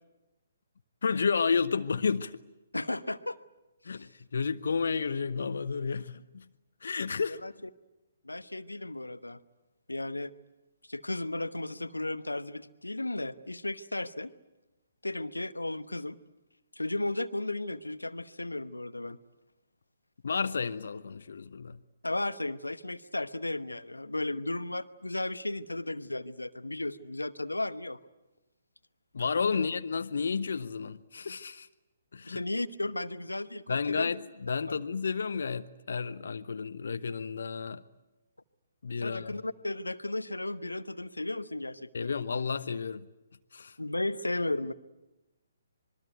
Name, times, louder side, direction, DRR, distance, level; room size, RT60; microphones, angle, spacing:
voice 1, 1.0-2.4 3.8-6.5 6.8-7.4 20.2-21.8 29.1-31.7 32.1-32.4 33.7-37.8 38.8-39.3 41.9-43.1 43.5-43.8, left 5 dB, 60° left, 0.9 m, -31 dB
voice 2, 2.7-3.4 3.8-4.1 7.3-7.5 8.2-9.4 9.9-10.3 10.9-14.3 15.0-16.2 16.7-19.2 22.0-28.0 29.5-29.6 32.2-34.1 34.7-34.8 39.0-42.1 43.8-44.7, left 2 dB, 85° left, 1.0 m, -34 dB
26.0 x 22.0 x 9.2 m
figure-of-eight pair, 135°, 0 cm